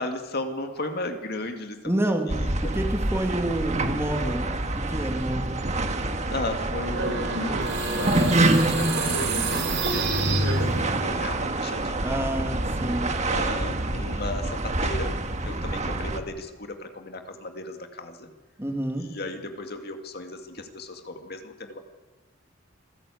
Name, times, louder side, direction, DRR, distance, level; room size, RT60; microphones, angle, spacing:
voice 1, 0.0-2.7 6.3-12.2 13.2-15.1 15.4-18.3 18.9-21.8, left 2 dB, 55° left, 5 dB, 2.2 m, -35 dB
voice 2, 1.8-2.3 2.6-5.6 12.0-13.1 18.6-19.1, right 1 dB, 15° right, 3 dB, 2.7 m, -28 dB
sound 1, 2.3-16.2, right 2 dB, 40° right, 1.7 m, -27 dB
sound 2, 6.9-11.1, right 2 dB, 70° right, 5.3 m, -27 dB
26.5 x 14.5 x 8.5 m, 1.2 s
head